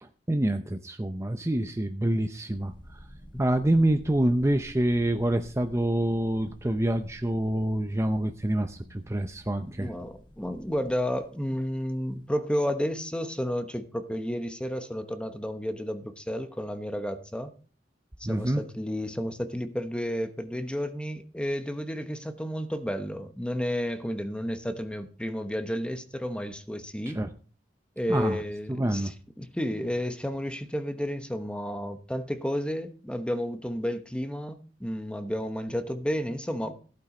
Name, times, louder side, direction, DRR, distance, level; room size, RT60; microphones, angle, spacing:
voice 1, 0.0-3.0 3.4-9.9 18.2-18.6 27.1-27.3 28.1-28.4 28.7-29.1, right 1 dB, 15° right, 0.7 m, -26 dB
sound 1, 2.5-11.4, equal, 30° left, 1.5 m, -50 dB
voice 2, 9.8-17.5 18.2-27.2 28.0-36.8, equal, 5° left, 1.0 m, -32 dB
15.0 x 8.8 x 4.4 m
head